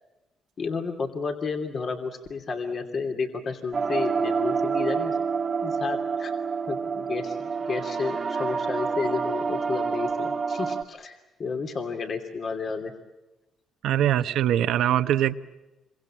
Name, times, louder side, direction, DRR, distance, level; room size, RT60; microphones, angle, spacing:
voice 1, 0.6-5.2 5.6-6.3 6.7-12.9, left 4 dB, 50° left, 3 dB, 2.9 m, -31 dB
sound 1, 3.7-10.8, right 5 dB, 40° right, 1.6 m, -28 dB
voice 2, 13.8-15.4, right 11 dB, 80° right, 10 dB, 1.1 m, -22 dB
27.5 x 24.5 x 7.5 m, 1.1 s
cardioid pair, 90°, 0 cm